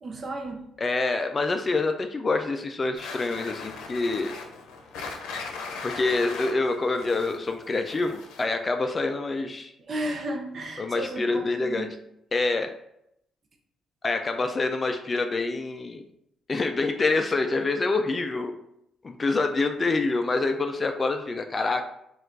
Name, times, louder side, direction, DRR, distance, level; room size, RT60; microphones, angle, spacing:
voice 1, 0.0-0.6 9.9-11.9, right 1 dB, 45° right, 3 dB, 0.6 m, -33 dB
voice 2, 0.8-4.3 5.8-9.7 10.8-11.9 12.3-12.7 14.0-16.0 16.5-18.5 19.0-21.8, left 3 dB, 30° left, 6 dB, 0.3 m, -26 dB
sound 1, 3.0-8.6, left 4 dB, 90° left, 0.6 m, -38 dB
4.3 x 2.4 x 3.9 m, 0.78 s
cardioid pair, 90°, 0 cm